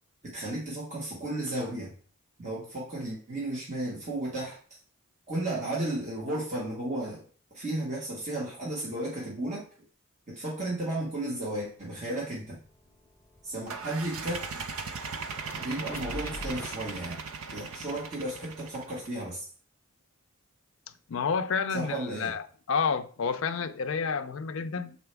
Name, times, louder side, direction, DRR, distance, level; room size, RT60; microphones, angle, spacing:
voice 1, 0.2-1.9 2.4-4.6 5.3-7.2 7.5-9.7 10.3-12.6 13.4-14.6 15.6-17.2 17.5-19.4 21.7-22.3, right 1 dB, 30° right, 1.6 m, -34 dB
sound 1, 11.4-11.5 11.8-16.8, left 2 dB, 10° left, 0.6 m, -46 dB
sound 2, 13.7-19.2, right 5 dB, 70° right, 0.5 m, -38 dB
voice 2, 21.1-25.0, left 5 dB, 60° left, 0.4 m, -30 dB
6.8 x 4.3 x 3.4 m
head